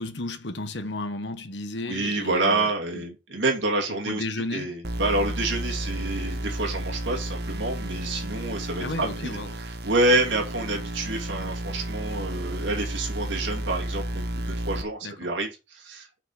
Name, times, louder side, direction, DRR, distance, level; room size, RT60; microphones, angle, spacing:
voice 1, 0.0-3.0 4.0-4.7 5.0-5.1 8.8-9.6 15.0-15.2, left 2 dB, 60° left, 1.1 m, -33 dB
voice 2, 1.9-4.2 4.5-9.1 9.6-16.2, right 2 dB, 75° right, 2.5 m, -28 dB
sound 1, 4.8-14.8, right 1 dB, 55° right, 1.2 m, -32 dB
6.0 x 4.9 x 5.8 m
head